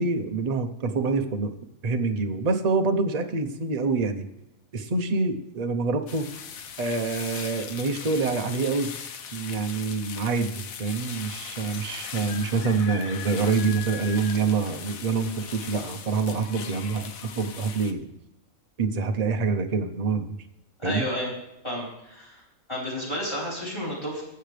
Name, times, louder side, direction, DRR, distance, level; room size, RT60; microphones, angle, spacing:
voice 1, 0.0-1.5 1.8-4.3 4.7-6.3 6.8-8.9 9.3-18.1 18.8-20.4 20.8-21.1, right 4 dB, 35° right, 6 dB, 0.8 m, -26 dB
sound 1, 6.1-17.9, left 7 dB, 80° left, 1.3 m, -39 dB
voice 2, 20.8-21.3 21.6-22.4 22.7-24.2, equal, 20° left, -6 dB, 4.4 m, -31 dB
18.5 x 7.9 x 3.3 m, 0.91 s
omnidirectional pair, 1.4 m